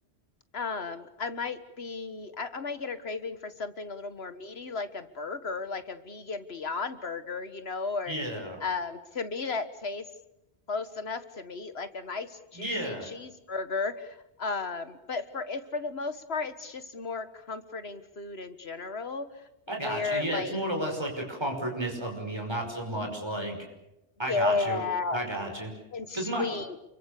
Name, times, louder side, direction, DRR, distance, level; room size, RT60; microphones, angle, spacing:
voice 1, 0.5-8.1 8.6-10.0 10.7-19.3 19.8-20.6 24.3-25.2 25.9-26.8, left 4 dB, 70° left, 11 dB, 1.8 m, -34 dB
voice 2, 8.1-8.6 12.5-13.1 19.7-23.6 24.2-24.8 25.1-25.7 26.1-26.5, right 1 dB, 25° right, 2 dB, 5.8 m, -32 dB
28.5 x 23.5 x 6.8 m, 0.91 s
omnidirectional pair, 1.1 m